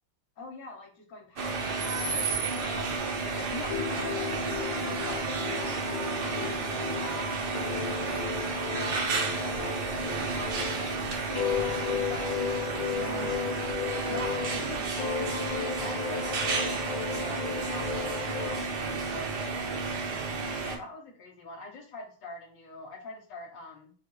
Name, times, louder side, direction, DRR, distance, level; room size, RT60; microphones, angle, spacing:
voice 1, 0.4-5.3 6.2-7.8 8.1-11.2 11.5-12.3 12.6-13.6 14.1-19.8 20.6-23.9, left 2 dB, 65° left, 2 dB, 1.5 m, -44 dB
sound 1, 1.4-20.8, right 4 dB, 60° right, 1.3 m, -32 dB
sound 2, 3.7-10.9 11.3-14.7 15.0-18.6, left 9 dB, 85° left, 1.5 m, -35 dB
4.2 x 2.4 x 4.7 m, 0.42 s
omnidirectional pair, 2.2 m